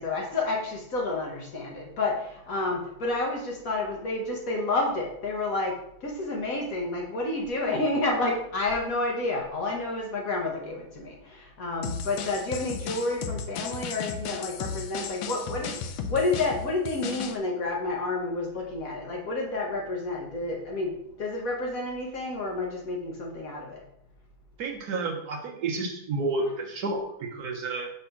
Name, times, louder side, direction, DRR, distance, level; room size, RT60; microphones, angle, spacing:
voice 1, 0.0-23.8, left 2 dB, 50° left, 0 dB, 1.2 m, -30 dB
sound 1, 11.8-17.4, left 6 dB, 80° left, 1.3 m, -35 dB
voice 2, 24.6-27.9, right 3 dB, 65° right, 2 dB, 1.1 m, -30 dB
5.5 x 3.3 x 5.7 m, 0.75 s
omnidirectional pair, 2.2 m